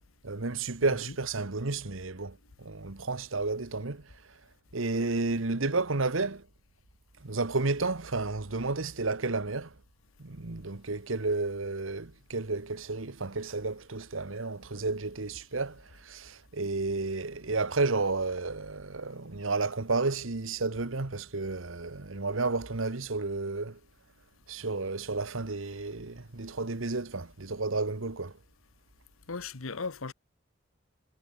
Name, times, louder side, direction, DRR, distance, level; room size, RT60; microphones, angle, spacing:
voice 1, 0.2-4.0 4.7-6.4 7.2-9.7 10.2-23.8 24.5-28.3, right 3 dB, 80° right, 1.3 m, -32 dB
voice 2, 29.3-30.1, left 4 dB, 90° left, 1.2 m, -37 dB
head